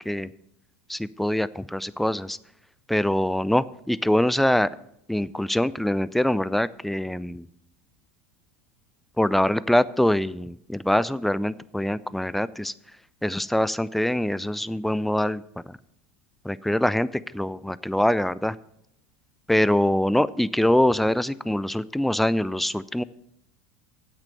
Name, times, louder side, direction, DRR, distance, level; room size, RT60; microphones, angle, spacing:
voice 1, 0.9-2.4 2.9-4.7 5.1-7.5 9.2-12.7 13.2-15.8 16.4-18.6 19.5-23.0, left 1 dB, ahead, 18 dB, 0.4 m, -24 dB
8.3 x 6.4 x 8.2 m, 0.77 s
hypercardioid pair, 95°, 7 cm